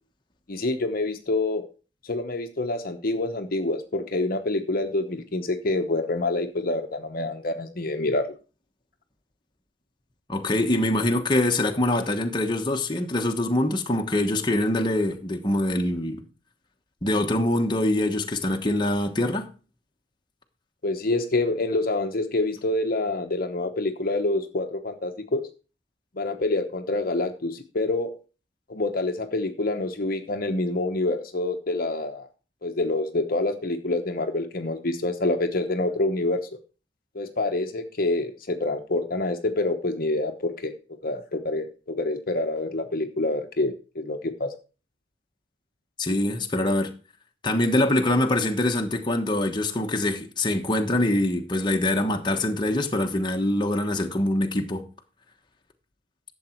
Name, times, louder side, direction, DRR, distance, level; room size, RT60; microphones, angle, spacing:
voice 1, 0.5-1.6 2.0-8.3 20.8-25.4 26.2-28.1 28.7-32.3 32.6-36.5 37.1-40.7 41.0-44.5, left 2 dB, 50° left, 1.0 m, -27 dB
voice 2, 10.3-16.2 17.0-19.5 46.0-46.9 47.4-54.8, left 1 dB, 25° left, 1.2 m, -24 dB
12.0 x 7.4 x 4.5 m
head